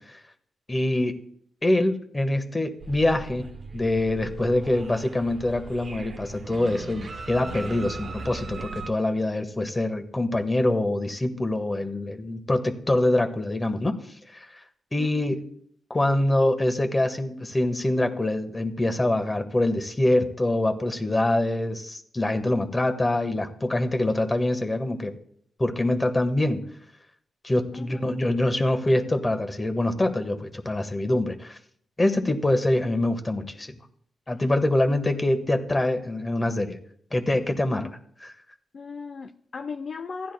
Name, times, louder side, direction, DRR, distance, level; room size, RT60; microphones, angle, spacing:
voice 1, 0.7-1.1 1.6-3.5 3.7-13.9 14.3-14.4 14.9-15.4 15.9-25.1 25.6-26.7 27.4-31.6 32.0-33.7 34.3-36.8 37.1-38.3, left 1 dB, 25° left, 7 dB, 1.3 m, -25 dB
sound 1, 2.8-8.9, right 4 dB, 55° right, 0.7 m, -39 dB
voice 2, 15.0-15.3 27.7-28.0 38.7-40.3, left 5 dB, 55° left, 6 dB, 0.5 m, -37 dB
15.5 x 10.0 x 2.2 m, 0.65 s
supercardioid pair, 55°, 0 cm